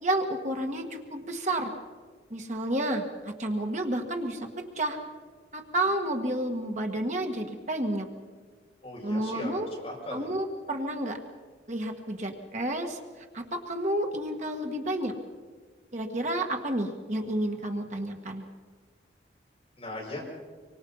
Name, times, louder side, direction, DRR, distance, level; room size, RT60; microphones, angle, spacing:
voice 1, 0.0-1.7 2.3-5.0 5.5-8.1 9.0-9.7 10.1-11.2 11.7-15.2 15.9-18.4, right 1 dB, 40° right, 3 dB, 1.7 m, -30 dB
voice 2, 8.8-10.3 19.8-20.2, left 1 dB, 35° left, -3 dB, 7.4 m, -38 dB
25.5 x 24.5 x 5.6 m, 1.5 s
head